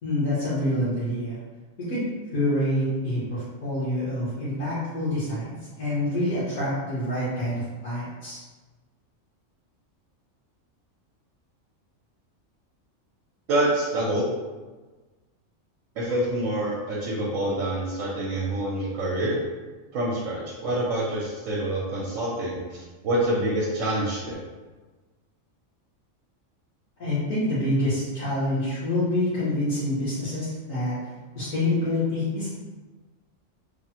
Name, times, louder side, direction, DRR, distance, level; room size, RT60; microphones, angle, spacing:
voice 1, 0.0-1.4 1.8-2.0 2.3-5.5 5.8-8.4 27.0-31.0 31.3-32.5, left 1 dB, 70° left, -12 dB, 1.3 m, -26 dB
voice 2, 13.5-14.2 16.0-19.4 19.9-24.3, right 1 dB, 75° right, -5 dB, 1.0 m, -26 dB
3.3 x 2.0 x 2.8 m, 1.3 s
omnidirectional pair, 1.4 m